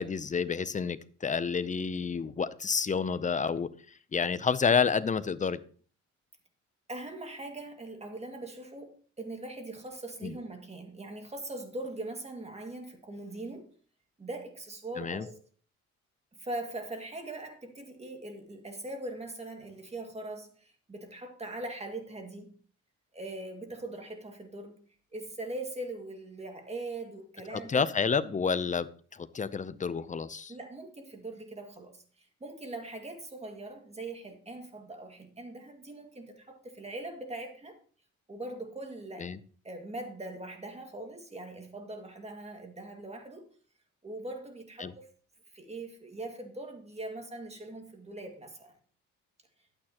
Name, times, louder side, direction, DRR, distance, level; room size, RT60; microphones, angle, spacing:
voice 1, 0.0-3.7 4.1-5.6 10.2-10.4 15.0-15.3 27.5-30.5 39.2-39.4 44.8-44.9, left 5 dB, 25° left, 15 dB, 0.6 m, -29 dB
voice 2, 6.9-13.7 14.2-15.3 16.4-22.5 23.1-24.8 25.1-27.9 30.5-37.8 38.3-39.3 39.6-43.5 44.0-45.1 45.5-48.7, right 2 dB, 20° right, 3 dB, 2.2 m, -41 dB
11.5 x 8.9 x 3.0 m, 0.43 s
cardioid pair, 90°, 30 cm